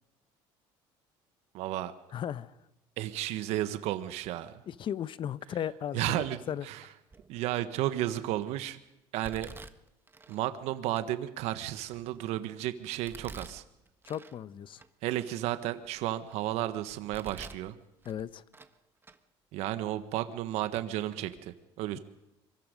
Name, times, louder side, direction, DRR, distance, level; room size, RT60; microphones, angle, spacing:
voice 1, 1.5-1.9 3.0-4.6 5.9-6.4 6.6-6.8 7.3-8.8 9.1-9.5 10.3-13.6 15.0-17.7 19.5-22.0, right 13 dB, 75° right, 11 dB, 1.4 m, -33 dB
voice 2, 2.1-2.5 4.7-6.7 14.1-14.8 18.0-18.4, left 9 dB, 50° left, 16 dB, 1.0 m, -36 dB
Domestic sounds home sounds, 7.1-7.5 8.1-8.5 9.2-10.4 11.0-11.1 11.6-12.4 13.0-14.4 14.8-14.9 15.5-16.4 16.9-17.7 18.0-18.8 19.0-19.2 20.0-20.1 20.7-20.9 21.2-21.4, right 3 dB, 20° right, 1.4 m, -49 dB
26.0 x 24.0 x 5.3 m, 0.90 s
supercardioid pair, 95°, 11 cm